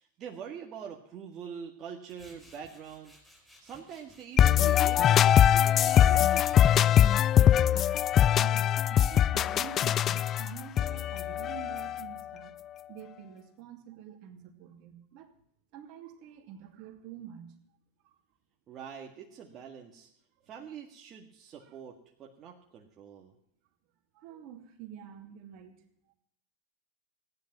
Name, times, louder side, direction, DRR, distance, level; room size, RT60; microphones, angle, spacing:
voice 1, 0.0-3.2 3.6-7.3 18.7-20.1 20.5-23.3, right 7 dB, 40° right, 1 dB, 1.9 m, -45 dB
Tools, 2.1-10.9, left 1 dB, ahead, 5.6 m, -58 dB
sound 1, 4.4-12.2, left 10 dB, 35° left, 0.4 m, -22 dB
voice 2, 8.4-12.5 12.9-15.3 15.7-17.6 18.0-18.2 20.4-20.5 21.6-21.8 24.1-25.8, right 9 dB, 55° right, 6 dB, 2.5 m, -47 dB
15.5 x 10.5 x 6.1 m, 0.70 s
hypercardioid pair, 100°, 0 cm